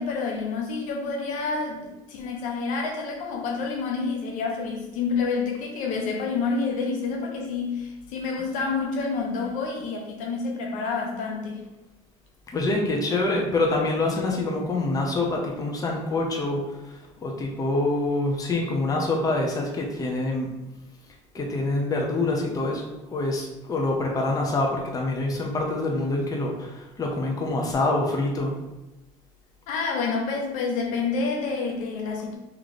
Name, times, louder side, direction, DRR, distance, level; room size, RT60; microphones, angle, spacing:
voice 1, 0.0-11.6 29.7-32.3, left 4 dB, 65° left, 0 dB, 1.0 m, -28 dB
voice 2, 12.5-20.5 21.3-28.5, left 2 dB, 25° left, 0 dB, 0.9 m, -26 dB
3.3 x 3.2 x 4.0 m, 1.0 s
supercardioid pair, 105°, 14 cm